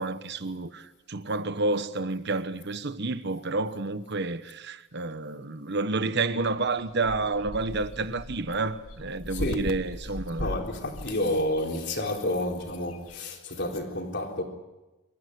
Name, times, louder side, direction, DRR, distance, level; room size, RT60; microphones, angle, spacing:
voice 1, 0.0-10.5, right 3 dB, 50° right, 1.1 m, -30 dB
sound 1, 6.4-13.2, left 1 dB, 80° left, 1.4 m, -40 dB
voice 2, 9.3-9.8 10.1-14.4, left 1 dB, 50° left, 4.0 m, -30 dB
26.0 x 14.0 x 9.8 m
head